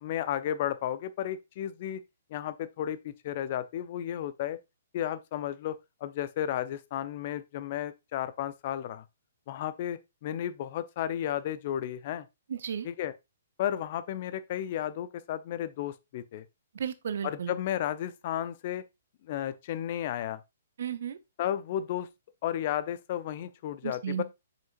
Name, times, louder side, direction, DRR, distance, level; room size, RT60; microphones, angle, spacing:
voice 1, 0.0-2.0 2.3-4.6 4.9-5.8 6.0-9.0 9.5-12.3 12.8-13.1 13.6-16.4 17.2-18.8 19.2-20.4 21.4-22.1 22.4-24.2, left 11 dB, 40° left, 0.6 m, -33 dB
voice 2, 12.5-12.9 16.7-17.5 20.8-21.2 23.8-24.2, right 8 dB, 55° right, 0.7 m, -34 dB
7.3 x 5.9 x 2.5 m
figure-of-eight pair, 120°, 0 cm